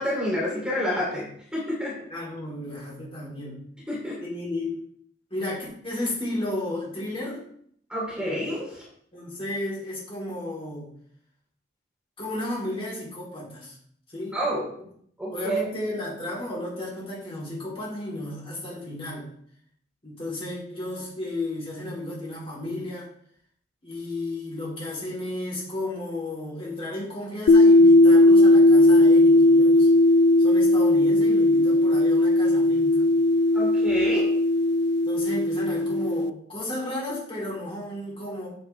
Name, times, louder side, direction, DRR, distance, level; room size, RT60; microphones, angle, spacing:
voice 1, 0.0-1.9 3.9-4.2 7.9-8.8 14.3-14.6 15.2-15.6 33.5-34.3, equal, 5° right, -5 dB, 2.8 m, -28 dB
voice 2, 2.1-3.6 4.2-4.8 5.3-7.4 9.1-10.9 12.2-13.8 14.1-14.4 15.3-19.3 20.0-23.1 23.8-29.9 30.4-33.1 35.0-38.5, left 1 dB, 30° left, -6 dB, 3.3 m, -33 dB
sound 1, 27.5-36.3, left 2 dB, 60° left, 0.3 m, -17 dB
7.9 x 7.3 x 3.3 m, 0.66 s
head